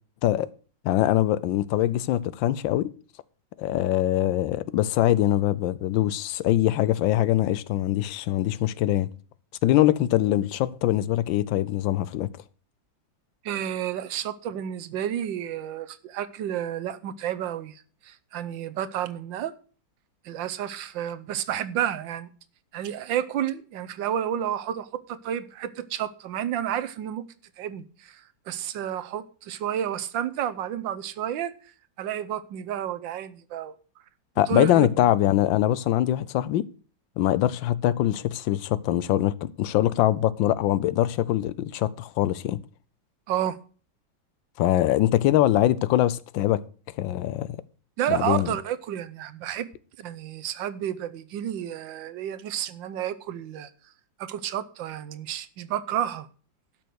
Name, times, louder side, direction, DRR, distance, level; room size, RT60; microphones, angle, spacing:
voice 1, 0.8-2.9 3.6-9.1 9.6-12.3 34.4-36.7 37.2-42.6 44.6-46.6 47.0-47.6 48.1-48.5, left 13 dB, 80° left, 1.4 m, -23 dB
voice 2, 13.4-19.5 20.2-22.3 22.7-27.3 27.6-31.5 32.0-33.7 34.5-35.0 43.3-43.6 48.0-49.7 50.0-53.7 54.2-56.3, right 10 dB, 80° right, 1.5 m, -31 dB
12.0 x 6.0 x 6.4 m
omnidirectional pair, 2.0 m